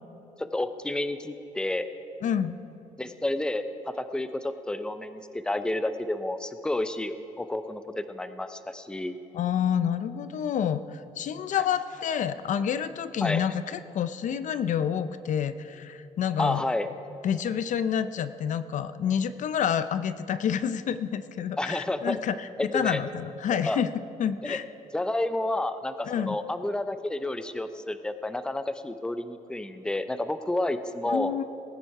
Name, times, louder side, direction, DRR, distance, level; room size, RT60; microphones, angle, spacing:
voice 1, 0.4-1.8 3.0-9.1 13.2-13.4 16.4-16.9 21.6-22.2 22.6-23.0 23.6-23.8 24.4-24.6 24.9-31.3, left 1 dB, 5° left, 10 dB, 0.6 m, -30 dB
voice 2, 2.2-2.6 9.3-16.6 17.2-22.5 22.7-23.9 24.2-24.6 26.1-26.4 31.1-31.4, left 8 dB, 60° left, 13 dB, 0.5 m, -28 dB
19.5 x 9.1 x 4.8 m, 3.0 s
cardioid pair, 110°, 15 cm